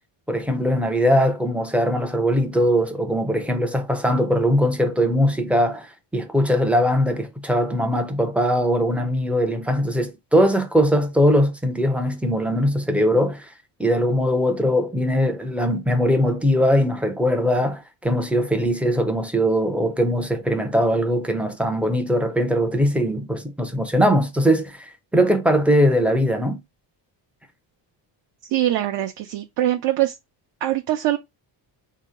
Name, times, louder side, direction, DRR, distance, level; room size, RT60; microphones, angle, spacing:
voice 1, 0.3-13.5 13.8-26.6, equal, 5° right, 0.4 m, -21 dB
voice 2, 28.4-30.1 30.6-31.2, right 14 dB, 60° right, 0.6 m, -23 dB
3.7 x 2.8 x 4.8 m
cardioid pair, 170°, 44 cm